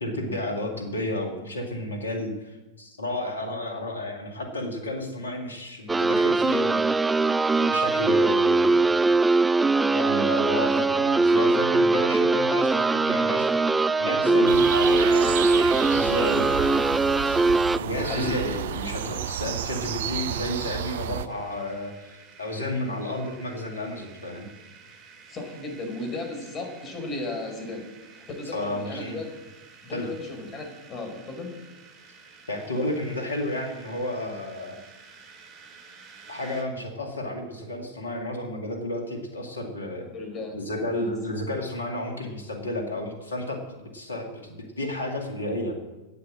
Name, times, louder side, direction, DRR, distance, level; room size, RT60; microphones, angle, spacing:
voice 1, 0.0-7.1 7.5-9.1 9.9-17.0 17.7-24.5 28.5-29.2 29.9-30.1 32.5-34.8 36.3-40.1 40.5-45.7, left 1 dB, 85° left, 3 dB, 2.2 m, -32 dB
sound 1, 5.9-17.8, right 3 dB, 10° right, 0.3 m, -21 dB
voice 2, 14.0-14.5 18.0-18.3 25.3-27.8 28.1-29.4 29.8-31.5 40.1-40.6 40.9-41.1, left 2 dB, 30° left, 3 dB, 5.1 m, -34 dB
sound 2, 14.5-21.3, right 11 dB, 65° right, 0.6 m, -31 dB
sound 3, 21.3-36.6, right 5 dB, 40° right, 3.4 m, -51 dB
11.5 x 8.7 x 7.6 m, 1.1 s
hypercardioid pair, 100°, 0 cm